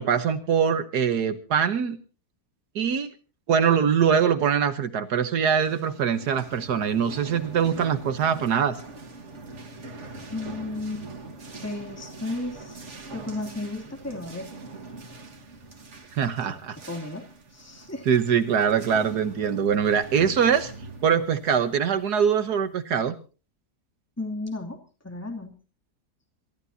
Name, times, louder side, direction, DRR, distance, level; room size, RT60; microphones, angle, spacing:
voice 1, 0.0-2.0 2.7-3.1 3.5-8.8 16.1-16.8 18.1-20.7 21.0-23.1, right 7 dB, 80° right, 9 dB, 1.7 m, -23 dB
sound 1, 5.3-22.7, right 3 dB, 50° right, 2.0 m, -43 dB
voice 2, 10.3-11.1 11.6-14.5 16.5-16.6 16.9-18.1 24.2-25.6, left 2 dB, 10° left, 3 dB, 2.8 m, -34 dB
28.0 x 14.0 x 2.8 m, 0.35 s
omnidirectional pair, 1.7 m